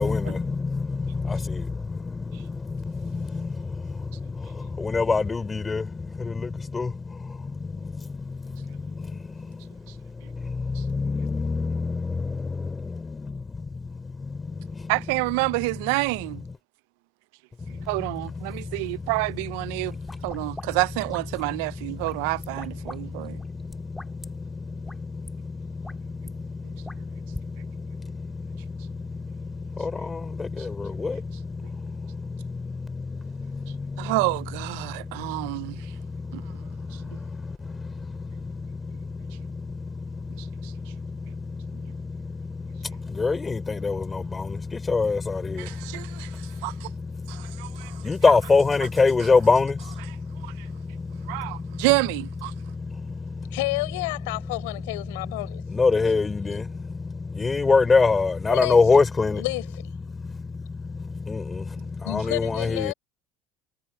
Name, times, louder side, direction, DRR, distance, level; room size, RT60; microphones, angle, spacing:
voice 1, 0.0-15.2 15.6-15.9 16.2-16.6 17.6-19.1 19.6-20.8 21.3-51.9 52.5-53.6 54.2-59.5 60.0-62.9, left 4 dB, 25° left, 4.0 m, -28 dB
voice 2, 14.9-16.4 17.9-19.9 20.2-23.4 34.0-35.9 36.3-36.4 36.9-37.0 40.6-40.7 45.6-46.9 47.3-48.0 50.4-50.7 51.3-52.5, right 26 dB, 75° right, 0.5 m, -28 dB
sound 1, 19.9-21.6 22.0-23.0 23.2-24.3 24.8-25.0 25.2-25.3 25.7-26.3 26.8-27.5, left 1 dB, 5° left, 4.9 m, -42 dB
voice 3, 53.5-55.6 58.5-58.8 59.4-59.6 62.0-62.9, left 23 dB, 80° left, 6.0 m, -29 dB
hypercardioid pair, 80°, 0 cm